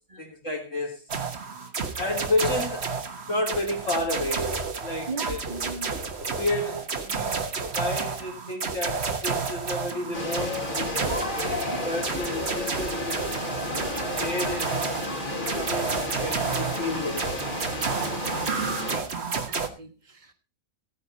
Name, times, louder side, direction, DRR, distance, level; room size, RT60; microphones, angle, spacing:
voice 1, 0.2-1.0 2.0-5.4 6.2-7.4 7.7-11.0 11.8-13.2 13.9-14.9 15.4-17.6, left 2 dB, 65° left, 3.9 m, -31 dB
sound 1, 1.1-19.7, right 5 dB, 50° right, 1.6 m, -31 dB
voice 2, 5.1-5.9 11.7-11.8 18.8-20.3, right 3 dB, 35° right, 1.7 m, -38 dB
sound 2, 10.1-19.0, left 1 dB, 40° left, 2.4 m, -32 dB
16.0 x 9.6 x 4.1 m
omnidirectional pair, 1.4 m